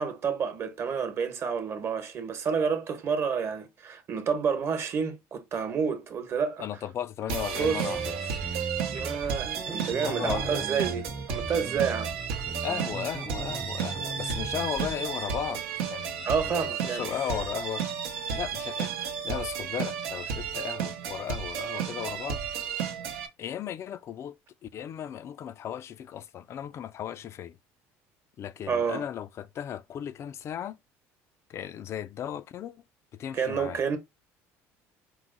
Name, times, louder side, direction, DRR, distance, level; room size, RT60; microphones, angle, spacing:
voice 1, 0.0-6.7 7.6-7.8 8.9-12.4 16.2-17.1 28.7-29.0 33.3-34.0, right 6 dB, 45° right, 1.0 m, -29 dB
voice 2, 6.6-8.4 10.0-10.7 12.6-15.6 15.9-17.8 18.3-22.4 23.4-24.3 24.6-27.6 28.4-30.8 31.5-32.8 33.2-33.8, left 10 dB, 45° left, 0.4 m, -36 dB
sound 1, 7.3-23.3, right 7 dB, 90° right, 0.8 m, -33 dB
sound 2, 7.6-15.0, right 3 dB, 15° right, 0.4 m, -39 dB
4.6 x 2.0 x 3.7 m
supercardioid pair, 90°, 6 cm